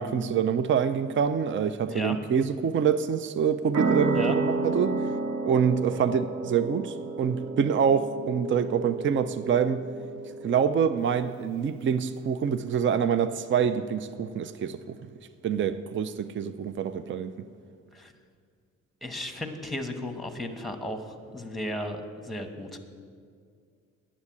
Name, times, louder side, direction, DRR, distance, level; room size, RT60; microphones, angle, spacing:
voice 1, 0.0-4.9 5.5-9.8 10.4-15.0 15.4-17.3, right 7 dB, 40° right, 12 dB, 0.5 m, -26 dB
sound 1, 3.7-10.9, right 3 dB, 60° right, 1.3 m, -31 dB
voice 2, 19.0-22.8, left 1 dB, ahead, 6 dB, 1.2 m, -34 dB
9.6 x 7.4 x 8.7 m, 2.1 s
cardioid pair, 90°, 30 cm